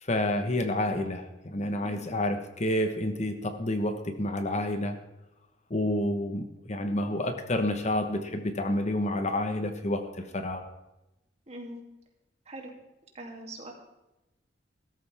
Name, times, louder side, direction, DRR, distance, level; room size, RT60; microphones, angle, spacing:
voice 1, 0.0-5.0 5.7-10.6, left 1 dB, 40° left, 7 dB, 1.3 m, -29 dB
voice 2, 1.8-2.1 11.5-11.8 12.5-12.7 13.1-13.7, right 1 dB, 35° right, 1 dB, 2.9 m, -42 dB
16.0 x 14.0 x 3.6 m, 0.96 s
head